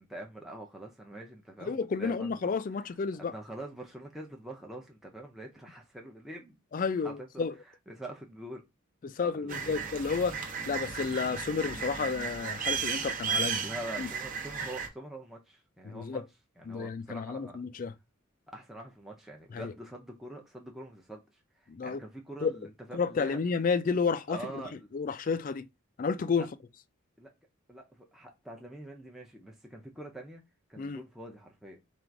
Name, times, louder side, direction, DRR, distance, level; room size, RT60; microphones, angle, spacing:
voice 1, 0.0-2.4 2.7-2.9 3.2-6.6 7.0-8.6 9.2-9.9 13.6-16.2 16.6-17.6 18.5-23.4 24.3-24.9 26.4-26.5 27.2-27.3 27.7-30.4 30.7-31.8, right 1 dB, ahead, 0.6 m, -45 dB
voice 2, 1.6-3.3 6.7-7.5 9.0-13.6 14.0-14.1 15.8-16.2 16.7-17.9 19.5-19.7 21.7-22.0 22.4-22.5 22.9-24.4 24.9-25.6 26.0-26.5 30.8-31.0, left 5 dB, 40° left, 0.3 m, -31 dB
sound 1, 9.5-14.9, right 6 dB, 40° right, 0.7 m, -34 dB
3.8 x 2.5 x 4.5 m
head